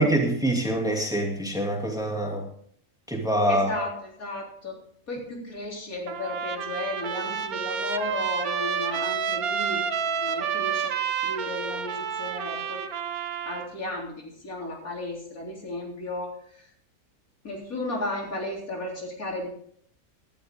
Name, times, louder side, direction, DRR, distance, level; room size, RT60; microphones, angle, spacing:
voice 1, 0.0-2.4 3.1-3.9, right 1 dB, ahead, 0 dB, 2.6 m, -25 dB
voice 2, 3.5-4.8 5.1-10.9 11.2-12.9 13.5-16.7 17.4-19.5, left 2 dB, 75° left, -1 dB, 4.0 m, -34 dB
Trumpet, 6.1-13.7, right 7 dB, 90° right, 1.5 m, -29 dB
18.0 x 11.0 x 3.7 m, 0.63 s
omnidirectional pair, 1.5 m